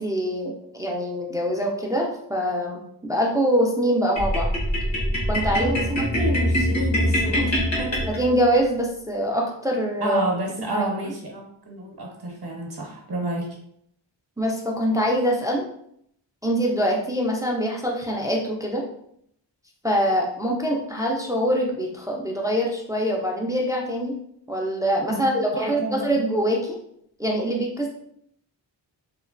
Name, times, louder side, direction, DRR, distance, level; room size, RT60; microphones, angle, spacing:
voice 1, 0.0-4.5 5.3-6.1 8.1-10.2 10.7-10.9 14.4-15.7 16.4-18.8 19.8-24.2 24.5-26.8 27.2-27.9, equal, 10° right, -1 dB, 0.3 m, -24 dB
sound 1, 4.2-8.6, equal, 70° left, 1.1 m, -24 dB
voice 2, 5.4-8.1 10.0-13.6 25.1-26.3, right 1 dB, 55° right, -1 dB, 0.8 m, -30 dB
3.0 x 2.1 x 2.4 m, 0.71 s
wide cardioid pair, 85°, 46 cm